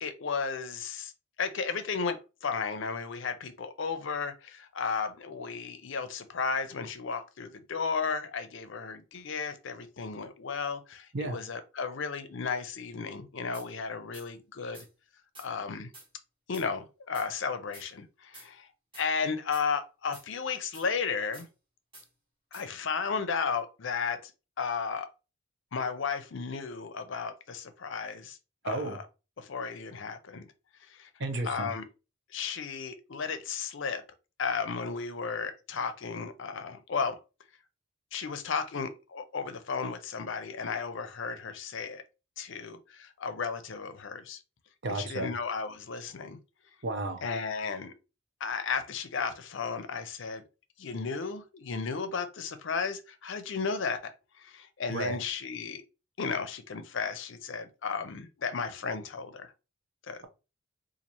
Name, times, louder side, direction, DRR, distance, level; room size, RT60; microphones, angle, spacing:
voice 1, 0.0-1.1 1.4-14.8 15.4-15.9 16.5-18.7 18.9-21.5 22.5-24.3 24.6-25.1 25.7-28.4 28.6-28.8 29.4-30.5 30.9-31.1 31.5-31.8 32.3-34.0 34.4-37.2 38.1-42.0 42.4-44.4 44.9-46.4 47.2-47.9 48.4-50.4 50.8-55.8 56.2-59.5 60.1-60.2, left 5 dB, 65° left, 0.5 m, -34 dB
sound 1, 13.5-13.7 14.1-14.3 14.7-14.9 15.4-15.5 15.9-16.1 16.5-16.7 17.1-17.3 17.7-17.9 18.3-18.5 18.9-19.1 19.5-19.7 20.1-20.3 20.7-20.9 21.3-21.5 21.9-22.1 22.5-22.7, right 2 dB, 25° right, 1.4 m, -50 dB
voice 2, 28.6-29.0 31.2-31.7 44.8-45.3 46.8-47.2 54.9-55.2, right 2 dB, 55° right, 0.7 m, -32 dB
4.0 x 2.5 x 2.9 m
head